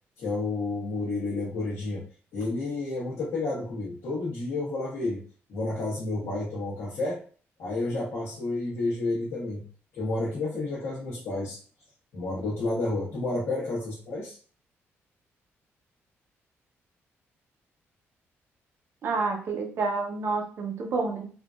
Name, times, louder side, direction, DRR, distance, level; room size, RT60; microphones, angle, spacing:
voice 1, 0.2-2.0 2.3-5.2 5.5-7.2 7.6-9.6 9.9-11.6 12.1-14.4, left 2 dB, 65° left, -6 dB, 1.1 m, -30 dB
voice 2, 19.0-21.3, right 4 dB, 55° right, 2 dB, 0.7 m, -29 dB
3.6 x 2.5 x 2.4 m, 0.42 s
cardioid pair, 155°, 5 cm